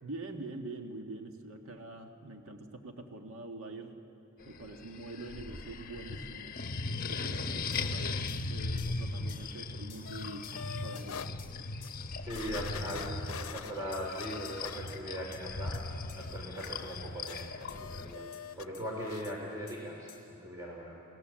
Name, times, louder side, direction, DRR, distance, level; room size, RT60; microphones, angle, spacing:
voice 1, 0.0-3.9 4.5-8.2 8.5-10.4 10.8-11.3 11.6-11.7, right 2 dB, 70° right, 4 dB, 1.8 m, -45 dB
sound 1, 4.4-18.1, left 3 dB, 40° left, 1.0 m, -38 dB
sound 2, 7.7-7.9 8.3-8.5 8.8-9.0 9.3-9.5 9.9-10.1 10.4-10.6 11.0-11.1 11.4-11.5 11.8-12.0 12.4-12.6 12.9-13.1 13.4-13.6 13.9-14.1 14.4-14.6 14.9-15.0 15.3-15.4 15.7-15.8 16.1-16.2 16.6-16.7 17.3-17.4 17.7-17.8 18.3-18.4 18.7-18.8 19.2-19.4 19.7-19.8 20.1-20.2, left 8 dB, 25° left, 3.3 m, -53 dB
sound 3, 10.1-11.3 11.8-11.9 12.3-15.3 15.6-18.7 19.0-19.3 19.7-19.8, left 7 dB, 70° left, 0.7 m, -46 dB
voice 2, 12.2-15.8 16.1-18.2 18.6-21.0, equal, 15° right, -2 dB, 3.1 m, -40 dB
29.0 x 18.0 x 7.6 m, 2.9 s
head